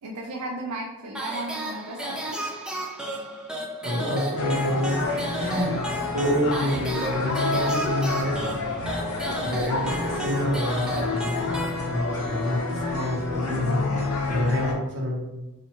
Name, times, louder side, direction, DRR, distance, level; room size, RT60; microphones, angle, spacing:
voice 1, 0.0-2.4, right 2 dB, 90° right, 0 dB, 0.5 m, -35 dB
sound 1, 1.1-12.3, right 1 dB, 5° right, 0.4 m, -34 dB
voice 2, 3.8-5.7 6.1-8.5 9.4-15.2, equal, 55° right, -1 dB, 0.9 m, -28 dB
sound 2, 4.4-14.7, left 3 dB, 70° left, 0.6 m, -28 dB
4.3 x 2.4 x 2.8 m, 0.97 s
head